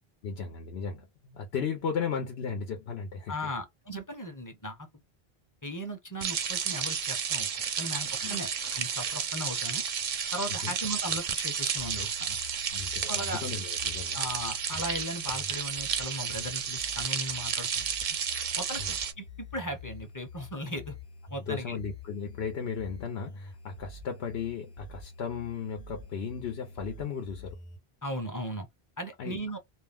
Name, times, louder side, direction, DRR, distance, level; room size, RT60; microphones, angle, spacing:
voice 1, 0.2-3.3 8.2-8.4 10.6-10.7 12.7-14.2 18.8-19.0 21.5-27.6 29.2-29.4, left 6 dB, 90° left, 0.9 m, -35 dB
voice 2, 3.3-4.9 5.6-7.5 7.8-9.8 10.3-12.4 13.0-13.4 14.1-17.9 18.6-21.0 21.3-21.8 28.0-28.7 29.0-29.6, equal, 25° left, 0.6 m, -37 dB
sound 1, 6.2-19.1, right 7 dB, 55° right, 0.6 m, -32 dB
sound 2, 11.8-27.8, left 4 dB, 45° left, 0.9 m, -47 dB
2.4 x 2.1 x 3.4 m
omnidirectional pair, 1.0 m